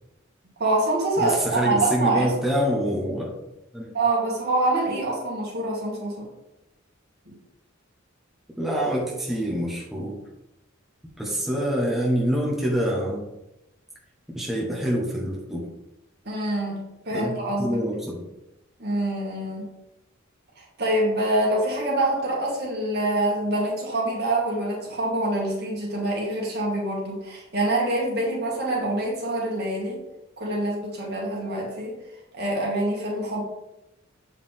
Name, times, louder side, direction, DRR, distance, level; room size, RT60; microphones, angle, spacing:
voice 1, 0.6-2.6 3.9-6.3 7.3-7.4 16.3-17.8 18.8-19.7 20.6-30.0 30.4-32.0 32.3-33.4, right 2 dB, 55° right, -2 dB, 2.1 m, -25 dB
voice 2, 1.2-3.3 3.7-3.9 8.6-10.2 11.2-13.2 14.3-15.6 17.1-17.3 17.6-18.2, equal, ahead, -5 dB, 1.2 m, -26 dB
7.4 x 4.8 x 3.7 m, 0.92 s
head